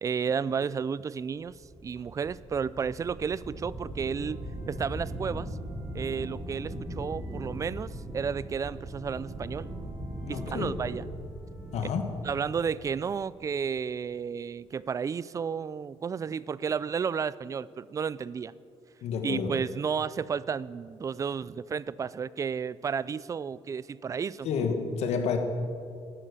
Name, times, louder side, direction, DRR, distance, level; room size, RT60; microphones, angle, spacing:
voice 1, 0.0-1.6 1.8-5.5 5.9-9.7 10.3-11.0 12.2-18.5 19.2-24.5, right 6 dB, 30° right, 19 dB, 0.3 m, -32 dB
sound 1, 1.5-13.5, right 1 dB, 15° right, 2.5 m, -39 dB
voice 2, 10.3-10.8 11.7-12.1 19.0-19.6 24.4-25.4, left 5 dB, 80° left, 6 dB, 1.3 m, -30 dB
13.0 x 9.4 x 6.9 m, 2.3 s
cardioid pair, 125°, 11 cm